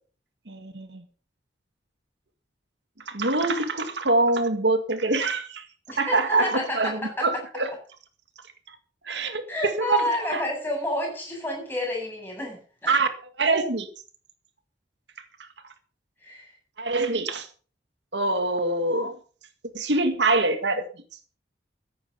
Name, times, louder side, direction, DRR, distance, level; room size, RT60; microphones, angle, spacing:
voice 1, 0.5-1.0 3.1-5.6 6.0-7.7 9.1-9.4 9.8-10.0 10.3-10.4 12.9-13.1 13.4-13.9 16.8-17.5 18.1-19.1 19.7-20.8, right 2 dB, 75° right, 1.9 m, -24 dB
voice 2, 5.9-7.4 9.5-12.9 16.2-16.6, left 1 dB, 10° left, 7.9 m, -30 dB
15.0 x 10.5 x 5.7 m
head